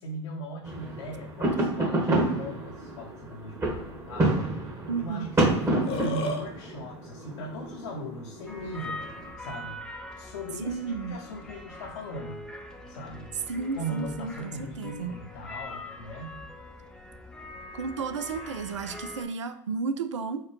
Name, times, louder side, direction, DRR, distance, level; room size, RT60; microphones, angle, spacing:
voice 1, 0.0-4.3 5.0-9.1 9.4-9.9 10.2-12.4 12.9-13.4 13.8-16.4, right 1 dB, 75° left, -2 dB, 0.8 m, -38 dB
sound 1, 0.6-9.3, right 2 dB, 20° right, 1.2 m, -29 dB
voice 2, 4.9-5.3 10.6-11.2 13.5-15.1 17.7-20.5, right 5 dB, 85° right, 9 dB, 0.4 m, -33 dB
Burping eructation, 5.6-6.4, left 3 dB, 40° left, 0.8 m, -31 dB
sound 2, 8.5-19.2, left 1 dB, 5° left, 0.5 m, -43 dB
4.6 x 2.2 x 3.0 m, 0.73 s
hypercardioid pair, 90°, 15 cm